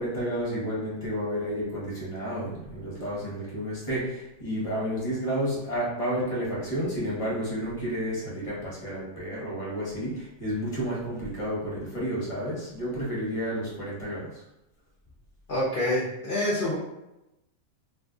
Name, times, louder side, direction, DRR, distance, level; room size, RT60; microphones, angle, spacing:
voice 1, 0.0-14.4, equal, 25° left, -6 dB, 0.9 m, -31 dB
voice 2, 15.5-16.8, left 1 dB, 55° left, -7 dB, 0.6 m, -26 dB
2.7 x 2.5 x 3.7 m, 0.93 s
omnidirectional pair, 1.9 m